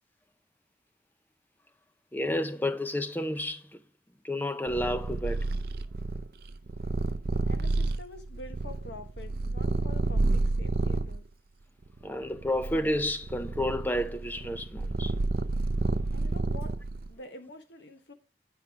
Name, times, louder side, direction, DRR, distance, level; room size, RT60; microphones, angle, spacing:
voice 1, 2.1-3.8 4.2-5.5 12.0-15.1, left 1 dB, 10° left, 0.5 m, -31 dB
Purr, 4.7-11.2 11.9-17.1, right 2 dB, 60° right, 0.5 m, -30 dB
voice 2, 7.4-11.2 16.1-16.7 17.1-18.1, left 2 dB, 85° left, 1.3 m, -47 dB
9.7 x 5.9 x 4.8 m
head